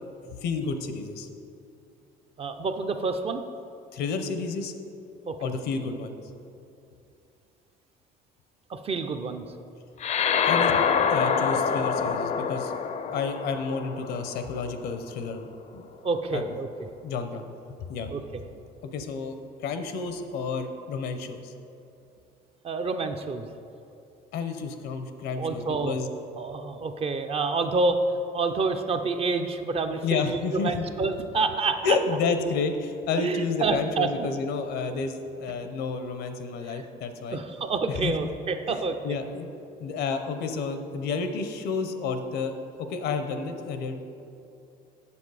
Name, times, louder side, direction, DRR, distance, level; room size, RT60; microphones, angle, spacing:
voice 1, 0.3-1.3 3.9-4.7 5.4-6.1 10.4-10.8 11.1-12.7 13.1-15.5 15.7-15.9 16.3-16.4 17.0-17.4 17.9-18.1 18.8-21.5 24.3-26.1 30.0-30.8 31.8-37.4 37.9-38.1 38.7-38.8 39.0-39.5 39.8-44.0, left 4 dB, 80° left, 8 dB, 0.7 m, -30 dB
voice 2, 2.4-3.5 5.3-5.4 8.7-9.5 16.0-16.9 18.1-18.4 22.6-23.5 25.4-26.0 26.4-28.0 28.3-30.2 30.5-32.0 33.2-34.3 36.7-36.8 37.3-39.2, right 4 dB, 35° right, 7 dB, 0.5 m, -28 dB
sound 1, 10.0-14.7, left 6 dB, 45° left, 0.5 m, -26 dB
7.1 x 6.9 x 4.8 m, 2.7 s
cardioid pair, 110°, 17 cm